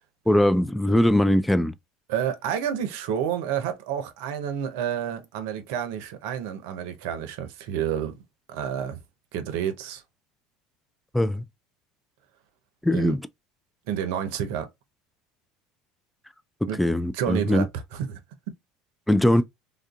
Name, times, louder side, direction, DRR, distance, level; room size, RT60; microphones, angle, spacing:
voice 1, 0.3-1.7 11.1-11.4 12.8-13.3 16.6-17.7 19.1-19.4, left 1 dB, 5° left, 0.4 m, -21 dB
voice 2, 2.1-8.2 8.5-9.0 9.3-10.0 12.9-13.1 13.9-14.7 16.7-16.8 17.2-18.2, right 9 dB, 70° right, 0.7 m, -29 dB
3.4 x 2.5 x 2.3 m
hypercardioid pair, 75°, 0 cm